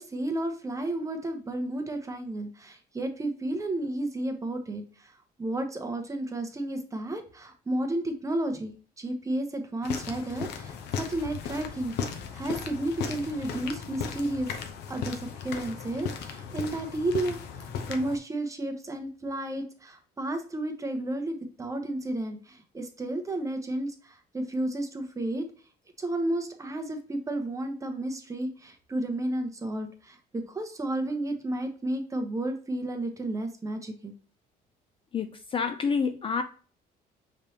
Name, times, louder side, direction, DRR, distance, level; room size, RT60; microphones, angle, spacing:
voice 1, 0.0-14.5 14.9-25.5 26.0-34.1, right 1 dB, 20° right, 0.8 m, -32 dB
sound 1, 9.8-18.2, left 6 dB, 75° left, 0.7 m, -36 dB
voice 2, 35.1-36.4, left 5 dB, 30° left, 0.4 m, -28 dB
5.2 x 3.3 x 2.8 m
cardioid pair, 110°, 17 cm